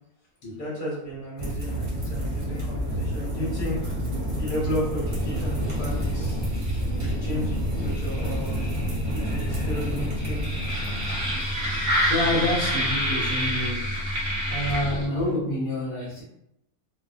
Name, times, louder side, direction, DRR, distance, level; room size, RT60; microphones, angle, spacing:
voice 1, 0.6-4.0 4.3-6.4 7.0-8.6 9.1-10.4 12.3-12.4, equal, 40° left, -5 dB, 1.0 m, -33 dB
sound 1, 1.4-15.3, equal, 40° right, 0.9 m, -28 dB
sound 2, 5.0-15.1, equal, 85° right, 1.1 m, -33 dB
voice 2, 9.1-9.7 12.1-14.0 14.5-16.2, left 1 dB, 70° left, -6 dB, 1.1 m, -28 dB
2.5 x 2.1 x 2.4 m, 0.80 s
omnidirectional pair, 1.6 m